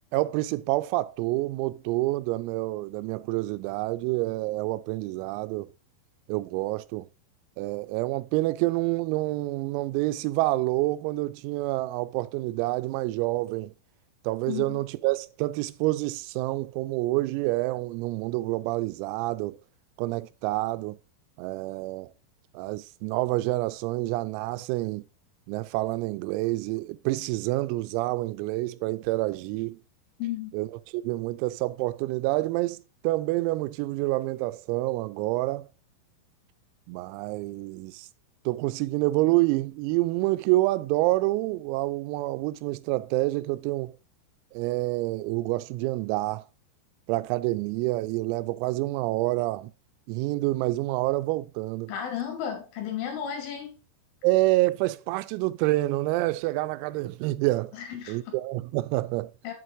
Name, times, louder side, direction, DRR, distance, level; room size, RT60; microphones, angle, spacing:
voice 1, 0.1-5.7 6.3-7.1 7.6-13.7 14.2-19.6 20.0-21.0 21.4-22.1 22.5-25.0 25.5-29.8 30.5-35.7 36.9-38.1 38.5-43.9 44.5-46.4 47.1-49.7 50.1-51.9 54.2-57.8 58.1-59.3, right 19 dB, 90° right, 3.3 m, -27 dB
voice 2, 14.5-14.8 30.2-30.5 51.9-53.8 57.7-58.4 59.4-59.5, left 9 dB, 70° left, 4.3 m, -33 dB
8.2 x 7.8 x 2.6 m
omnidirectional pair, 6.0 m